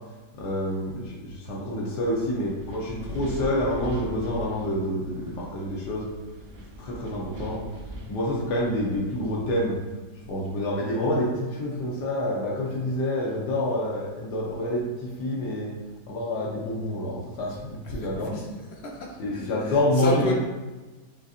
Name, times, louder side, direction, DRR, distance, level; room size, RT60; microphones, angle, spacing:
voice 1, 0.4-6.1 6.8-7.6 8.1-9.8 10.3-15.7 16.1-18.4 19.2-20.3, left 1 dB, 85° left, -4 dB, 1.5 m, -27 dB
Wind, 2.0-9.4, equal, 55° right, 0.7 m, -41 dB
voice 2, 17.8-20.3, left 2 dB, 50° left, -1 dB, 0.8 m, -32 dB
7.6 x 2.7 x 2.5 m, 1.2 s
omnidirectional pair, 1.8 m